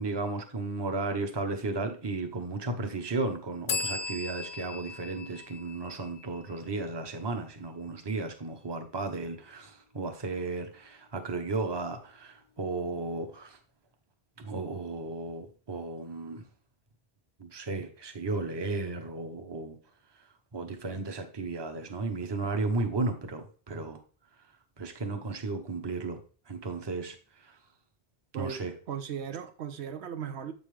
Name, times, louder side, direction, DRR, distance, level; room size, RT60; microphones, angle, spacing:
voice 1, 0.0-13.6 14.4-16.5 17.4-19.8 20.2-24.0 24.4-26.2 26.5-27.6 28.3-28.7, right 3 dB, 25° right, 6 dB, 0.8 m, -34 dB
sound 1, 3.7-7.2, left 4 dB, 60° left, 0.6 m, -37 dB
voice 2, 28.3-30.5, right 7 dB, 85° right, 9 dB, 1.0 m, -37 dB
7.5 x 5.4 x 3.2 m, 0.41 s
omnidirectional pair, 1.1 m